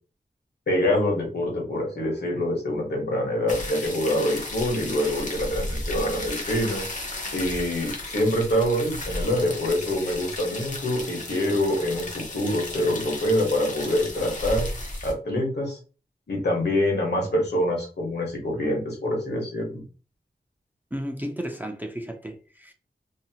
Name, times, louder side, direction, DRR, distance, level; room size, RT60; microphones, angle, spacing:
voice 1, 0.7-6.8 7.3-14.7 15.0-15.8 16.3-19.8, left 1 dB, 70° left, 1.1 m, -25 dB
sound 1, 3.5-15.1, left 1 dB, 45° left, 0.7 m, -34 dB
voice 2, 20.9-22.7, equal, 10° right, 0.4 m, -33 dB
2.7 x 2.0 x 2.8 m
wide cardioid pair, 80°, 18 cm